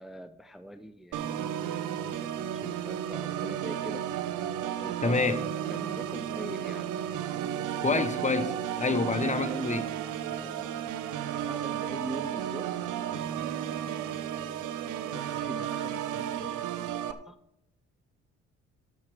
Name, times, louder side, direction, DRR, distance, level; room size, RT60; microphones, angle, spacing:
voice 1, 0.0-1.4 2.0-4.1 4.7-5.2 5.7-7.0 9.2-9.8 10.3-11.0 11.5-12.7 14.9-17.4, right 1 dB, ahead, 0.6 m, -44 dB
Organ, 1.1-17.1, right 10 dB, 80° right, 0.8 m, -33 dB
voice 2, 5.0-5.4 7.8-9.9, left 4 dB, 25° left, 1.0 m, -28 dB
14.0 x 5.9 x 6.0 m
cardioid pair, 90°, 30 cm